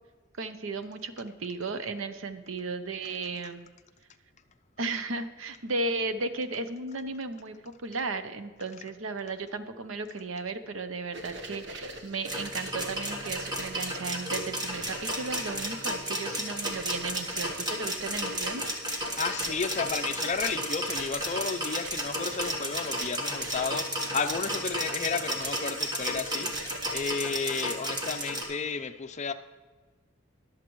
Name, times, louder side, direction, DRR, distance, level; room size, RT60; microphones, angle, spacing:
voice 1, 0.4-3.7 4.8-18.6, right 3 dB, 85° right, 0.8 m, -35 dB
sound 1, 11.1-27.0, right 1 dB, 60° right, 1.2 m, -45 dB
sound 2, 12.2-28.4, equal, 20° right, 1.5 m, -33 dB
voice 2, 18.9-29.3, left 5 dB, 35° left, 0.5 m, -33 dB
22.0 x 7.5 x 3.1 m
head